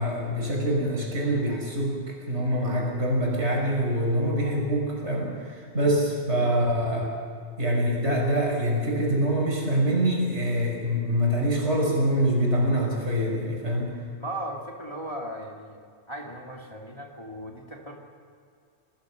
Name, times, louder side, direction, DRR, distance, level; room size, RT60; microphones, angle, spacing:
voice 1, 0.0-7.0 7.6-13.9, equal, 80° right, -1 dB, 6.4 m, -25 dB
voice 2, 14.2-15.8 16.1-18.0, right 1 dB, 25° left, 0 dB, 2.6 m, -37 dB
27.0 x 18.5 x 6.4 m, 2.2 s
omnidirectional pair, 1.1 m